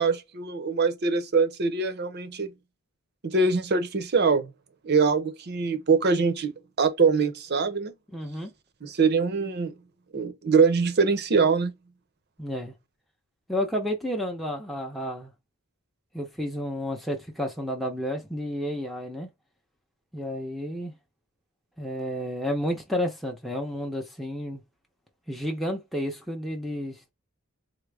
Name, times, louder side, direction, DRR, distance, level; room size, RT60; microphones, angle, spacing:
voice 1, 0.0-2.5 3.2-4.5 4.8-7.9 8.8-9.7 10.1-11.7, right 4 dB, 45° right, 0.6 m, -23 dB
voice 2, 8.1-8.5 12.4-12.7 13.5-15.3 16.1-19.3 20.1-20.9 21.8-24.6 25.3-27.1, equal, ahead, 0.6 m, -31 dB
3.7 x 2.0 x 3.3 m
head